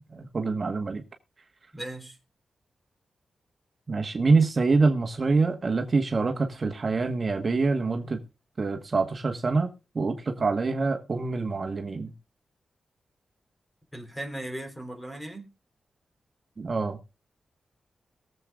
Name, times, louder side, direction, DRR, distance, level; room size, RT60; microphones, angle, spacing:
voice 1, 0.1-1.0 3.9-8.2 8.6-9.7 9.9-12.1 16.6-17.0, right 4 dB, 40° right, 1.3 m, -25 dB
voice 2, 1.7-2.2 13.9-15.5, right 1 dB, 10° left, 3.4 m, -37 dB
22.0 x 7.5 x 2.4 m
wide cardioid pair, 120°, 0 cm